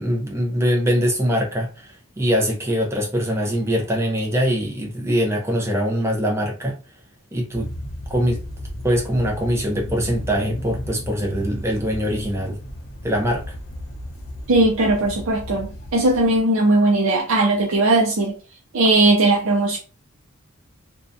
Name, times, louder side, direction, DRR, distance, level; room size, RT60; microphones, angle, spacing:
voice 1, 0.0-6.8 7.3-7.7 8.1-8.4 8.8-12.6 13.0-13.5, equal, 10° right, 0.5 m, -22 dB
sound 1, 7.5-16.4, equal, 90° left, 0.8 m, -34 dB
voice 2, 14.5-18.4 18.7-19.8, right 2 dB, 70° right, 0.5 m, -18 dB
2.5 x 2.2 x 2.5 m
head